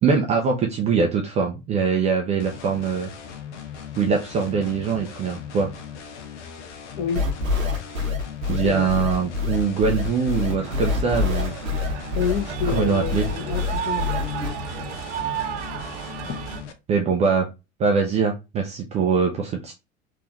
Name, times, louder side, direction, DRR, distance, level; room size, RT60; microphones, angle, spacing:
voice 1, 0.0-3.1 4.0-5.7 8.5-11.5 12.6-13.3 16.9-17.5 17.8-19.7, right 5 dB, 20° right, 0.4 m, -22 dB
sound 1, 2.4-16.7, left 7 dB, 60° left, 0.7 m, -39 dB
sound 2, 7.1-14.5, left 4 dB, 85° right, 0.9 m, -25 dB
voice 2, 8.5-8.9 12.1-14.6, left 6 dB, 35° left, 1.0 m, -28 dB
sound 3, 10.6-16.6, right 8 dB, 60° right, 0.7 m, -33 dB
3.5 x 2.5 x 2.9 m
figure-of-eight pair, 80°, 39 cm